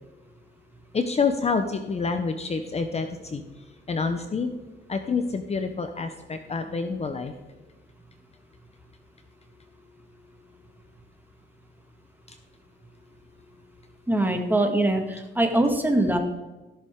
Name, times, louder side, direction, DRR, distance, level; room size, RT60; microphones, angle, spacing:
voice 1, 0.9-3.4 3.9-4.5 4.9-7.3 12.3-12.4, left 4 dB, 30° left, 8 dB, 0.8 m, -27 dB
voice 2, 14.1-16.2, right 1 dB, 10° right, 4 dB, 1.8 m, -22 dB
15.5 x 6.9 x 3.7 m, 1.1 s
cardioid pair, 90°, 20 cm